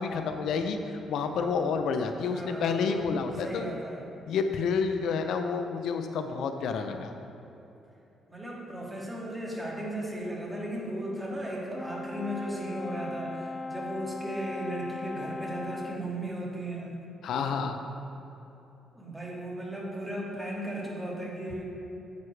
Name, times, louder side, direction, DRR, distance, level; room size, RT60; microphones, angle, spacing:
voice 1, 0.0-3.7 4.3-7.1 17.2-17.8, left 5 dB, 75° left, 6 dB, 0.5 m, -29 dB
voice 2, 2.3-2.8 3.4-4.0 8.3-16.9 18.9-21.6, right 1 dB, 10° right, -3 dB, 2.0 m, -36 dB
Brass instrument, 11.7-16.1, left 2 dB, 10° left, 0.4 m, -38 dB
9.4 x 8.6 x 3.3 m, 3.0 s
cardioid pair, 90°, 0 cm